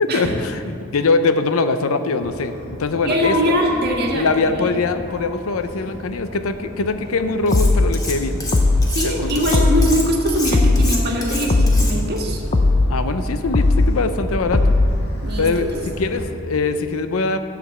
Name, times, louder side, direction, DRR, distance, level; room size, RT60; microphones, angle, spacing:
voice 1, 0.0-3.6 4.1-8.4 9.0-9.6 12.9-14.8 15.4-17.4, left 3 dB, 85° left, 10 dB, 0.6 m, -22 dB
Motor vehicle (road), 2.2-16.2, left 1 dB, 55° left, 1.6 m, -35 dB
voice 2, 3.0-4.8 8.9-12.4 15.2-15.8, equal, 50° right, 0 dB, 1.5 m, -22 dB
sound 1, 7.5-7.9 8.5-8.9 9.5-9.9 10.5-10.9 11.5-11.9 12.5-12.9 13.5-13.9 14.5-14.9, left 2 dB, 35° left, 0.6 m, -16 dB
Cutlery silverware, 7.5-8.1 8.4-12.2, left 2 dB, 15° left, 1.4 m, -28 dB
11.0 x 5.1 x 7.1 m, 2.5 s
head